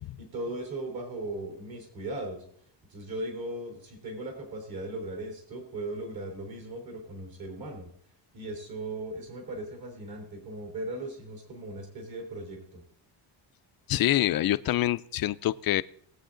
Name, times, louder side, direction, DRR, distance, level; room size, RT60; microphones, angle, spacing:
voice 1, 0.2-2.4 2.9-7.9 8.3-12.8, right 2 dB, 50° right, 3 dB, 3.5 m, -38 dB
voice 2, 13.9-15.8, left 14 dB, 50° left, 16 dB, 0.5 m, -25 dB
20.0 x 8.2 x 3.8 m, 0.67 s
cardioid pair, 135°, 45 cm